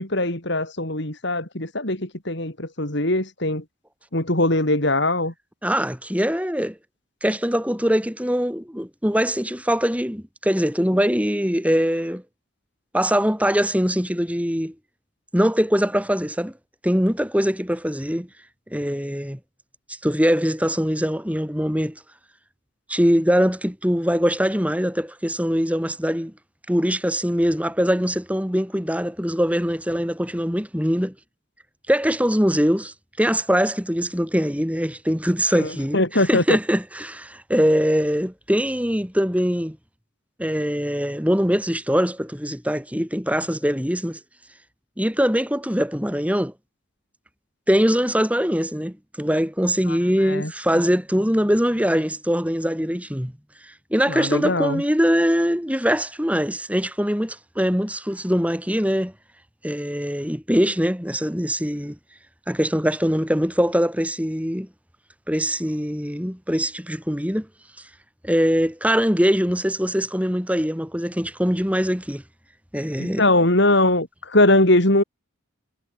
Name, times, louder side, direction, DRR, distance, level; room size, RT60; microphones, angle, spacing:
voice 1, 0.0-3.6 4.1-5.3 35.5-36.6 49.9-50.5 54.1-54.8 73.0-75.0, left 1 dB, 55° left, 3.8 m, -21 dB
voice 2, 5.6-6.8 7.2-12.2 12.9-14.7 15.3-16.5 16.8-18.3 18.7-19.4 19.9-22.0 22.9-26.3 26.7-31.1 31.9-39.8 40.4-44.2 45.0-46.5 47.7-53.3 53.6-59.1 59.6-62.0 62.5-64.7 65.3-67.5 68.2-72.2 72.7-73.2, equal, 5° right, 6.3 m, -22 dB
head